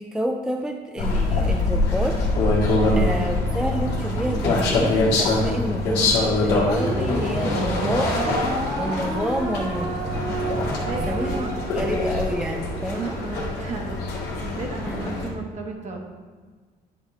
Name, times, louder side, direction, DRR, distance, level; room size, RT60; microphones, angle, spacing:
voice 1, 0.0-2.2 2.9-8.4 8.8-10.2 11.1-13.2 14.9-15.0, equal, 5° right, 3 dB, 0.4 m, -29 dB
sound 1, 1.0-15.3, left 2 dB, 85° left, 1.9 m, -24 dB
voice 2, 2.7-3.4 10.6-12.1 12.9-16.0, right 4 dB, 45° right, 1 dB, 1.3 m, -34 dB
sound 2, 6.5-13.0, right 2 dB, 90° right, 2.1 m, -30 dB
9.9 x 5.1 x 3.1 m, 1.4 s
cardioid pair, 110°, 17 cm